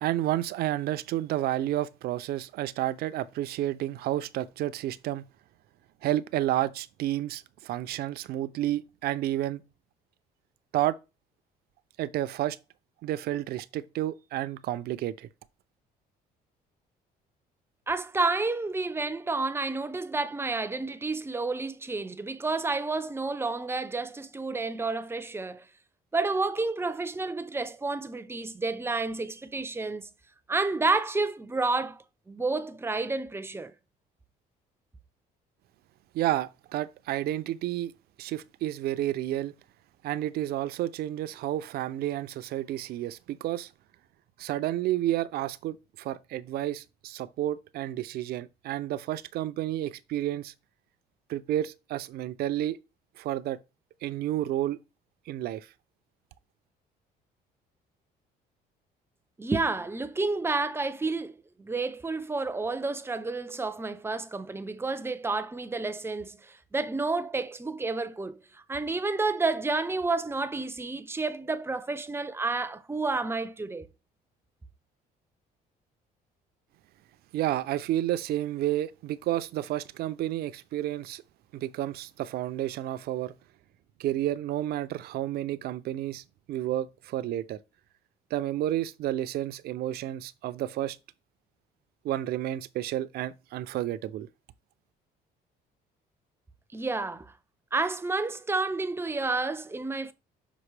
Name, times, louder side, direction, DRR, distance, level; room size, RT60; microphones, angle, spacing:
voice 1, 0.0-5.2 6.0-9.6 10.7-11.0 12.0-12.6 13.0-15.3 36.1-37.9 38.2-39.5 40.0-43.7 44.4-50.5 51.3-52.8 53.2-53.6 54.0-54.8 55.3-55.7 77.3-81.2 81.5-83.3 84.0-87.6 88.3-91.0 92.0-94.3, right 13 dB, 65° right, 0.5 m, -31 dB
voice 2, 17.9-25.7 26.1-30.1 30.5-33.7 59.4-61.3 61.6-73.9 96.7-97.3 97.7-100.1, right 3 dB, 15° right, 0.6 m, -30 dB
6.0 x 5.0 x 3.3 m
cardioid pair, 110°, 17 cm